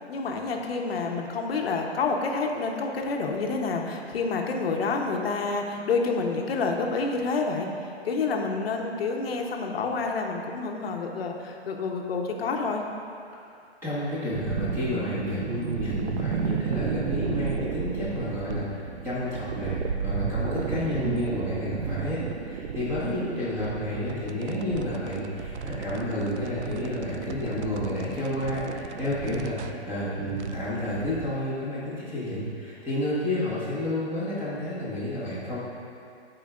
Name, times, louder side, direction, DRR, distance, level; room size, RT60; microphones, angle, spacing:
voice 1, 0.1-7.7 8.0-12.8, left 4 dB, 60° left, 2 dB, 1.1 m, -28 dB
voice 2, 13.8-35.6, left 1 dB, 5° right, -10 dB, 1.6 m, -30 dB
sound 1, 14.3-31.3, right 6 dB, 80° right, 0.6 m, -33 dB
14.5 x 4.9 x 2.5 m, 2.5 s
hypercardioid pair, 150°, 34 cm